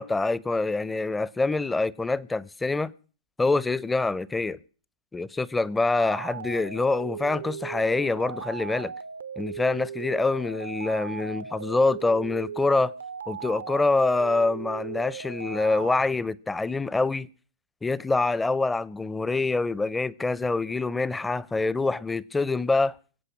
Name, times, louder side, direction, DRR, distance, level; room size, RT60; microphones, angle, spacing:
voice 1, 0.0-2.9 3.4-4.6 5.1-8.9 9.4-12.9 13.3-17.3 17.8-23.0, left 3 dB, 10° left, 0.6 m, -25 dB
sound 1, 5.9-16.0, right 7 dB, 75° right, 0.7 m, -38 dB
23.5 x 8.2 x 5.8 m
figure-of-eight pair, 105°, 0 cm